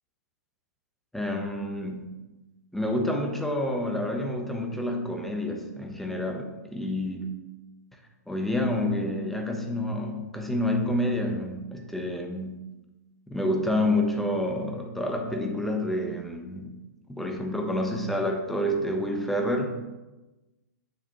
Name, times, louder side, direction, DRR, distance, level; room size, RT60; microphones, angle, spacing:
voice 1, 1.1-2.1 2.7-7.3 8.3-12.6 13.3-16.7 17.1-19.7, left 1 dB, ahead, 2 dB, 1.0 m, -28 dB
8.8 x 6.4 x 3.0 m, 1.1 s
hypercardioid pair, 130°, 9 cm